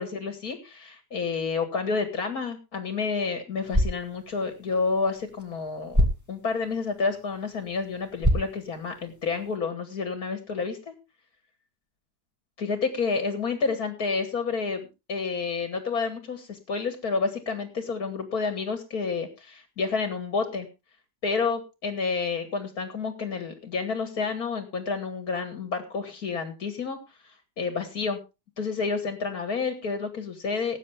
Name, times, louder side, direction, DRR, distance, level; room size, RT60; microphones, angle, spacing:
voice 1, 0.0-10.9 12.6-20.7 21.2-27.0 27.6-28.2 28.6-30.8, left 4 dB, 65° left, 7 dB, 2.4 m, -29 dB
sound 1, 3.5-9.6, equal, 10° right, 2.1 m, -30 dB
19.5 x 9.1 x 3.5 m, 0.28 s
omnidirectional pair, 1.7 m